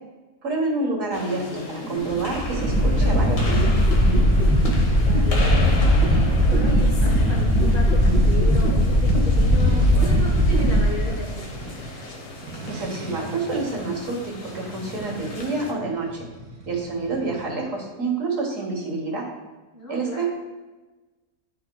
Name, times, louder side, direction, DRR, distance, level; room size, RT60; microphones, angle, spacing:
voice 1, 0.4-3.9 12.7-16.3 16.7-19.3 19.9-20.3, right 3 dB, 60° right, -1 dB, 1.6 m, -28 dB
sound 1, 1.1-15.7, left 2 dB, 75° left, 1.4 m, -36 dB
sound 2, 2.1-11.6, equal, 5° right, 0.9 m, -19 dB
sound 3, 3.0-17.7, right 2 dB, 80° right, 1.3 m, -41 dB
voice 2, 5.0-5.6 6.0-11.5 19.7-20.3, left 2 dB, 45° left, -6 dB, 2.2 m, -35 dB
11.0 x 4.5 x 2.2 m, 1.2 s
omnidirectional pair, 1.6 m